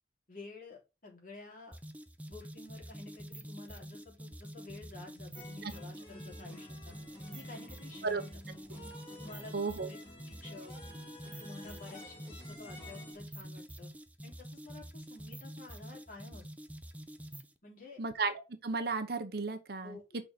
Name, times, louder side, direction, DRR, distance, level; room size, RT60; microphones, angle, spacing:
voice 1, 0.3-1.8 2.3-6.9 7.3-8.1 9.2-9.6 9.9-10.0 10.3-10.7 11.4-13.9 14.2-16.5 17.6-18.0 19.8-20.2, left 3 dB, 50° left, 3.1 m, -51 dB
sound 1, 1.7-17.6, equal, 10° right, 0.6 m, -47 dB
sound 2, 5.3-13.1, left 1 dB, 30° left, 2.5 m, -52 dB
voice 2, 9.5-9.9 18.0-20.0, right 4 dB, 60° right, 0.9 m, -34 dB
5.8 x 4.2 x 5.0 m
head